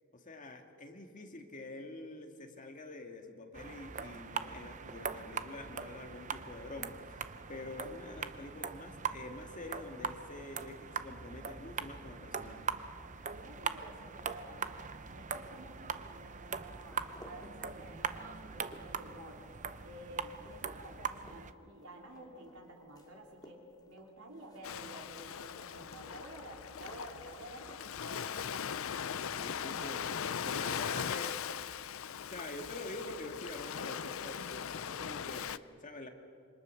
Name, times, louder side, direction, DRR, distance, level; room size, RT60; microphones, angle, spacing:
voice 1, 0.2-12.7 29.3-31.3 32.3-36.1, left 2 dB, 35° left, 3 dB, 2.1 m, -46 dB
sound 1, 3.5-21.5, right 6 dB, 35° right, 0.7 m, -41 dB
sound 2, 12.9-29.6, left 1 dB, 20° left, 2.8 m, -61 dB
voice 2, 13.3-14.8 15.1-19.4 19.8-23.6 23.9-28.5 29.6-30.0 30.4-31.0 32.0-32.2, right 1 dB, 85° right, 0 dB, 3.9 m, -51 dB
Ocean, 24.6-35.6, left 8 dB, 70° left, 0.5 m, -39 dB
27.0 x 25.0 x 6.5 m, 2.3 s
head